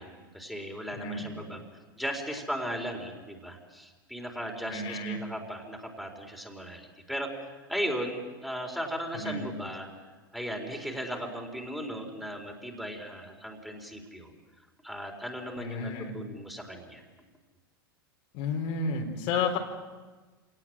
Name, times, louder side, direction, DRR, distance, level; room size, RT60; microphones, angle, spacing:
voice 1, 0.0-1.7 2.0-7.4 7.7-9.9 10.3-14.3 14.8-17.0, equal, ahead, 1 dB, 4.3 m, -37 dB
voice 2, 0.9-1.4 4.7-5.2 9.1-9.4 15.6-16.1 18.3-19.6, left 4 dB, 55° left, 2 dB, 4.4 m, -31 dB
27.0 x 19.0 x 7.6 m, 1.3 s
hypercardioid pair, 100°, 12 cm